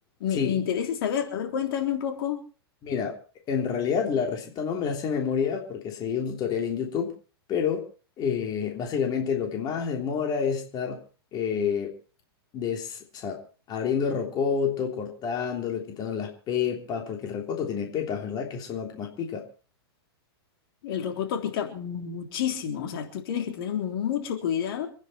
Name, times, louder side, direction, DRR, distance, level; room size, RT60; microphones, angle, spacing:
voice 1, 0.2-2.4 20.8-24.9, left 9 dB, 60° left, 4 dB, 3.5 m, -29 dB
voice 2, 2.8-3.1 3.5-7.1 7.5-7.8 8.2-11.0 11.3-11.9 12.5-13.4 13.7-19.4, left 7 dB, 30° left, 2 dB, 3.3 m, -28 dB
27.5 x 10.0 x 4.4 m, 0.38 s
hypercardioid pair, 130°, 13 cm